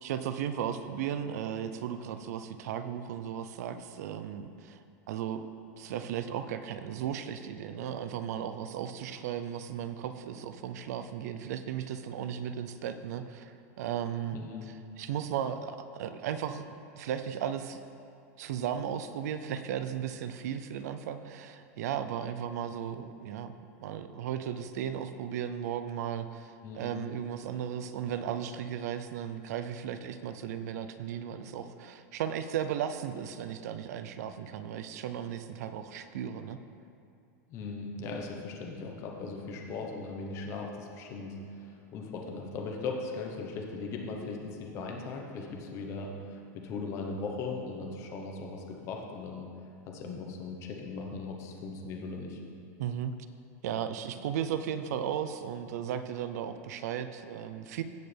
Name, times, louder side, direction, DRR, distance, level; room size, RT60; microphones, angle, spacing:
voice 1, 0.0-4.8 5.1-5.4 5.8-16.6 16.9-17.8 18.4-23.5 23.8-36.6 52.8-53.1 53.6-57.8, right 9 dB, 70° right, 10 dB, 0.6 m, -35 dB
voice 2, 14.3-14.7 26.6-27.0 37.5-49.5 49.9-52.4, left 4 dB, 30° left, 1 dB, 1.1 m, -38 dB
16.5 x 6.5 x 3.4 m, 2.5 s
supercardioid pair, 165°, 9 cm